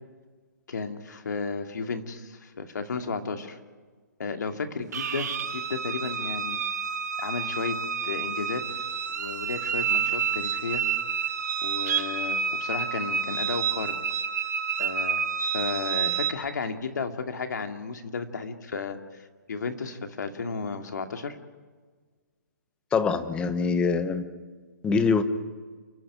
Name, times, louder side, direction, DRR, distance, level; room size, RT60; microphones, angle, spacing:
voice 1, 0.7-3.6 4.2-6.6 7.2-7.8 8.0-8.6 9.1-10.8 11.6-13.9 14.8-21.4, left 4 dB, 70° left, 6 dB, 2.4 m, -33 dB
sound 1, 4.9-16.3, right 7 dB, 65° right, 2.3 m, -29 dB
voice 2, 22.9-24.2 24.8-25.2, left 5 dB, 10° left, 11 dB, 1.0 m, -24 dB
29.5 x 10.5 x 9.9 m, 1.5 s
hypercardioid pair, 155°, 10 cm